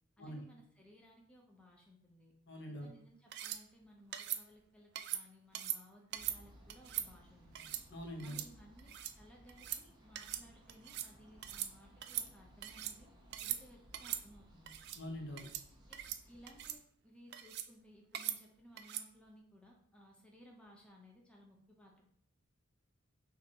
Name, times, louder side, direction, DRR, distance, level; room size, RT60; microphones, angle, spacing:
voice 1, 0.2-2.3 2.7-7.7 8.2-8.9 9.1-13.1 13.4-14.7 15.9-16.0 16.3-22.1, equal, 5° left, -1 dB, 0.6 m, -60 dB
voice 2, 2.5-2.9 7.9-8.4 14.9-15.5, equal, 60° left, 2 dB, 0.9 m, -44 dB
sound 1, 3.3-3.6 4.1-4.4 5.0-5.2 5.5-5.8 6.1-6.4 6.7-7.1 7.5-7.8 8.2-8.5 8.8-9.1 9.5-9.8 10.1-10.4 10.7-11.1 11.4-11.7 12.0-12.9 13.3-13.6 13.9-14.2 14.7-15.0 15.4-15.6 15.9-16.2 16.5-16.8 17.3-17.7 18.1-18.4 18.8-19.1, right 12 dB, 55° right, 0.3 m, -41 dB
sound 2, 6.1-16.8, equal, 20° right, 0.8 m, -61 dB
6.3 x 2.6 x 2.8 m, 0.66 s
head